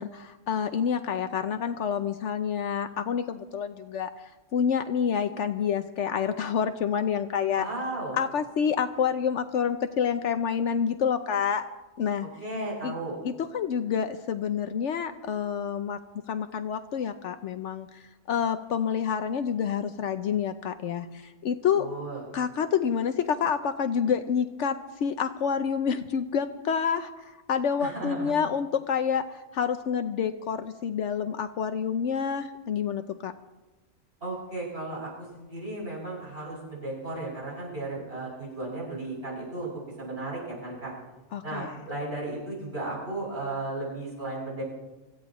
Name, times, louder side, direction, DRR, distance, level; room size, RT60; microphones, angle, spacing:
voice 1, 0.0-7.7 8.1-11.6 12.0-12.3 12.8-12.9 13.2-16.0 16.3-22.1 22.3-33.3 41.3-41.8, left 7 dB, 70° left, 8 dB, 1.0 m, -28 dB
voice 2, 7.6-8.2 12.4-13.2 21.7-22.2 27.8-28.3 34.2-39.7 40.0-40.9 41.4-44.6, right 2 dB, 55° right, -5 dB, 7.6 m, -35 dB
25.0 x 15.5 x 3.0 m, 1.1 s
omnidirectional pair, 1.3 m